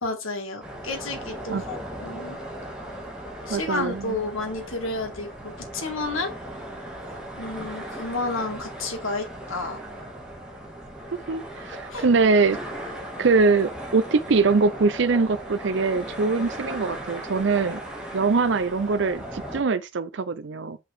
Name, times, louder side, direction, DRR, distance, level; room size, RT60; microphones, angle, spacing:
voice 1, 0.0-2.4 3.5-6.3 7.4-9.8 11.9-12.0, left 2 dB, 90° left, 2.2 m, -31 dB
sound 1, 0.6-19.6, right 1 dB, 5° right, 2.0 m, -37 dB
voice 2, 3.5-4.1 11.3-12.6 13.2-17.8 18.1-20.8, right 4 dB, 65° right, 0.5 m, -22 dB
6.0 x 5.3 x 3.6 m
head